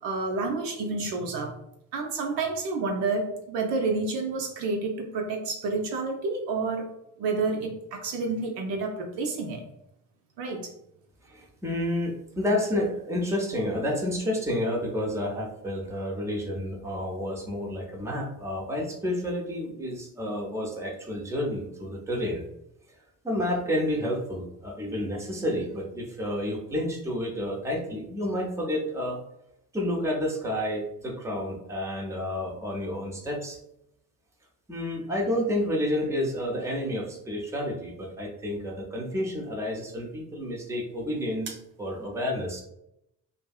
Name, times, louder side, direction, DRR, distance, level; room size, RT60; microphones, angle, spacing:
voice 1, 0.0-1.5 1.9-6.9 7.2-9.6 10.4-10.7, right 3 dB, 60° right, 2 dB, 0.6 m, -29 dB
voice 2, 11.3-22.4 23.2-29.2 29.7-33.6 34.7-42.6, left 1 dB, 5° right, -1 dB, 0.7 m, -30 dB
2.6 x 2.4 x 2.3 m, 0.80 s
figure-of-eight pair, 40°, 48 cm